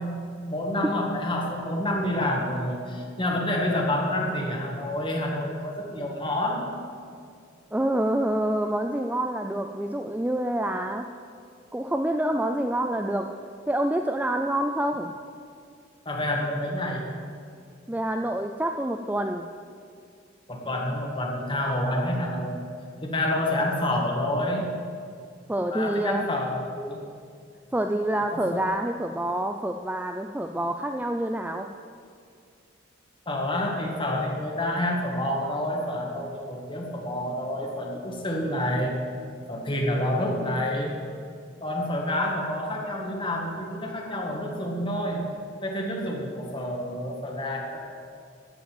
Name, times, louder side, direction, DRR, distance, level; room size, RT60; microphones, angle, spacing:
voice 1, 0.0-6.7 16.1-17.1 20.5-22.6 23.0-24.7 25.7-27.0 28.3-28.7 33.3-38.9 39.5-41.0 41.6-45.2 45.6-47.8, left 1 dB, 25° left, 0 dB, 1.7 m, -28 dB
voice 2, 7.7-11.1 11.7-13.3 13.7-15.1 17.9-19.5 25.5-26.2 27.7-31.7, right 1 dB, 10° right, 5 dB, 0.3 m, -27 dB
13.5 x 5.2 x 9.1 m, 2.3 s
head